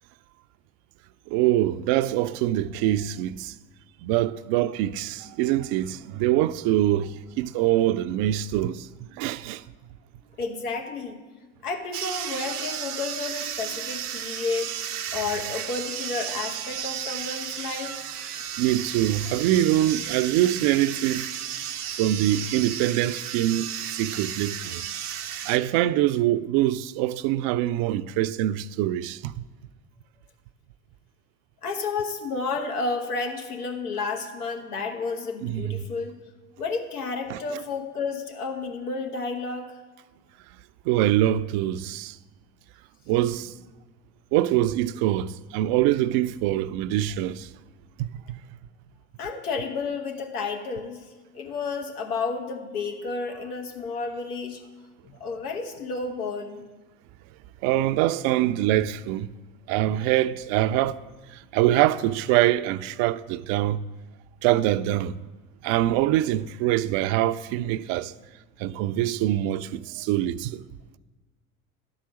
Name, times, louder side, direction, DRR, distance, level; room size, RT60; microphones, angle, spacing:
voice 1, 1.3-3.5 4.0-9.6 18.6-21.3 22.0-24.8 25.4-29.4 35.4-35.9 37.3-37.4 40.8-42.2 43.1-43.5 44.3-47.5 48.0-48.4 57.6-59.3 59.7-61.0 61.3-63.8 64.4-65.2 65.6-68.1 68.6-70.6, right 13 dB, 55° right, 0.5 m, -24 dB
voice 2, 10.4-11.2 11.6-14.8 15.1-18.1 31.6-36.2 36.6-39.8 49.2-51.1 51.3-54.6 55.0-56.6, left 4 dB, 85° left, 1.2 m, -31 dB
sound 1, 11.9-25.6, right 9 dB, 90° right, 0.8 m, -33 dB
11.5 x 4.8 x 6.2 m
hypercardioid pair, 75°, 44 cm